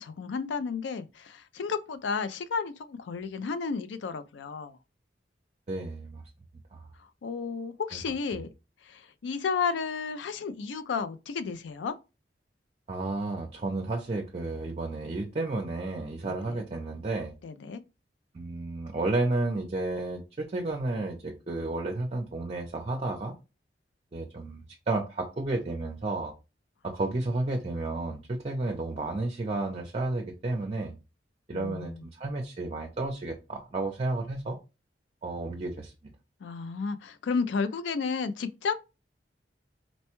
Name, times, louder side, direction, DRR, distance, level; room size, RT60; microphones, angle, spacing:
voice 1, 0.0-4.8 7.0-8.5 8.8-12.0 16.2-16.6 17.4-17.8 31.5-32.0 36.4-38.7, left 5 dB, 85° left, 0.4 m, -32 dB
voice 2, 5.7-6.2 6.7-6.9 12.9-17.3 18.3-23.3 24.1-24.6 24.9-26.3 26.8-30.9 31.5-34.6 35.2-35.9, right 2 dB, 35° right, 0.5 m, -32 dB
4.2 x 2.2 x 2.9 m
head